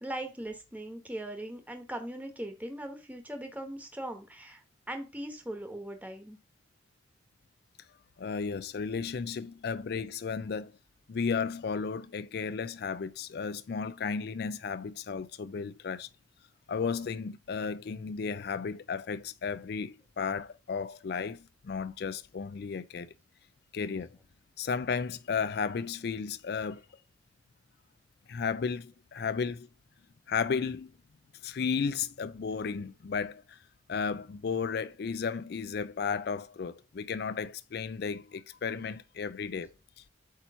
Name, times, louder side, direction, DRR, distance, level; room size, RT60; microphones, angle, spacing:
voice 1, 0.0-6.4, right 1 dB, 10° right, 1.1 m, -40 dB
voice 2, 8.2-10.7 11.1-16.1 16.7-23.1 23.7-24.1 24.6-26.8 28.3-29.7 30.3-30.9 31.4-33.6 33.9-39.7 40.0-40.1, left 5 dB, 60° left, 0.4 m, -34 dB
8.4 x 3.0 x 5.5 m
head